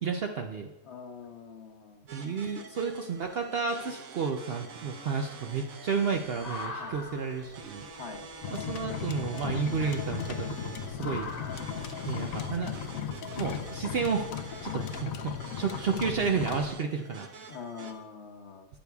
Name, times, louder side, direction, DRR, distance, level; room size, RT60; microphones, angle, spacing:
voice 1, 0.0-0.7 2.1-7.9 8.5-11.3 12.0-12.7 13.4-17.3, right 5 dB, 60° right, 4 dB, 0.7 m, -32 dB
voice 2, 0.8-2.1 6.8-7.0 7.9-8.3 17.5-18.7, left 5 dB, 55° left, 4 dB, 1.1 m, -44 dB
sound 1, 2.1-17.9, right 4 dB, 75° right, 1.4 m, -47 dB
sound 2, 6.1-12.9, left 2 dB, 30° left, 1.1 m, -45 dB
sound 3, 8.4-16.7, left 8 dB, 75° left, 1.0 m, -36 dB
14.0 x 8.2 x 2.3 m, 1.1 s
omnidirectional pair, 1.5 m